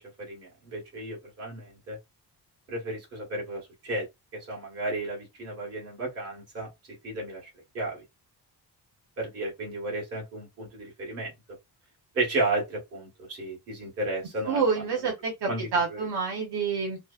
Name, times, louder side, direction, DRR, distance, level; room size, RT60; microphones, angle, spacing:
voice 1, 0.2-2.0 2.7-4.1 4.3-6.7 7.0-7.5 7.7-8.0 9.2-11.3 12.1-15.0 15.5-16.1, right 2 dB, 35° right, 1.5 m, -33 dB
voice 2, 14.5-17.0, right 5 dB, 70° right, 1.0 m, -28 dB
3.2 x 2.0 x 2.4 m
wide cardioid pair, 170°, 41 cm